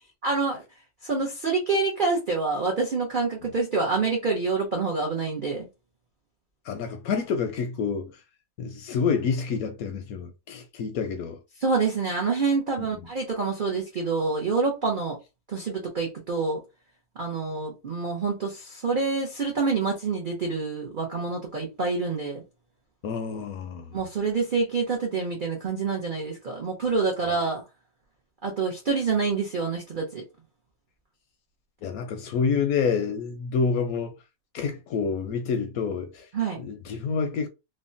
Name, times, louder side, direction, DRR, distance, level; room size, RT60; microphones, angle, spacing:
voice 1, 0.2-0.6 1.0-5.7 11.6-15.2 15.5-16.6 17.2-22.4 23.9-27.6 28.4-30.2 36.3-36.6, right 4 dB, 80° right, 0.4 m, -27 dB
voice 2, 6.7-8.1 8.6-11.4 12.9-13.1 23.0-24.0 27.2-27.4 31.8-34.1 34.5-36.3 36.6-37.5, left 5 dB, 70° left, 0.9 m, -28 dB
3.3 x 2.1 x 2.5 m
omnidirectional pair, 1.9 m